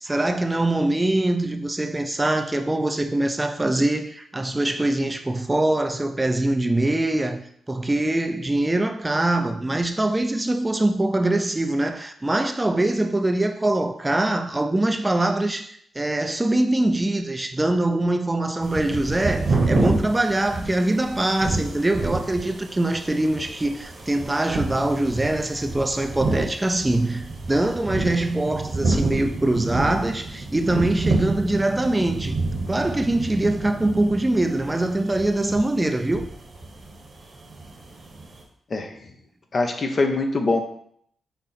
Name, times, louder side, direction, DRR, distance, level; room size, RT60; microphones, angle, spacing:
voice 1, 0.0-32.4 32.7-36.3, right 1 dB, 20° right, 0.4 m, -23 dB
sound 1, 18.6-38.4, right 3 dB, 55° right, 1.0 m, -29 dB
voice 2, 38.7-39.1 39.5-40.6, left 3 dB, 50° left, 0.7 m, -23 dB
5.4 x 2.0 x 4.1 m
supercardioid pair, 50°, 0 cm